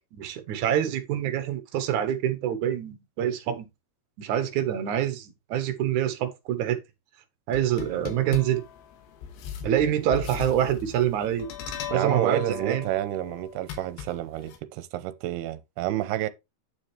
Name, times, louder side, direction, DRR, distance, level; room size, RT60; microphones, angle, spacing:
voice 1, 0.1-3.7 4.2-6.8 7.5-8.6 9.6-11.5 11.9-12.8, right 10 dB, 65° right, 2.1 m, -26 dB
sound 1, 7.5-14.6, left 9 dB, 85° left, 3.4 m, -38 dB
voice 2, 11.9-16.3, right 14 dB, 85° right, 2.6 m, -29 dB
8.8 x 7.2 x 3.2 m
omnidirectional pair, 4.8 m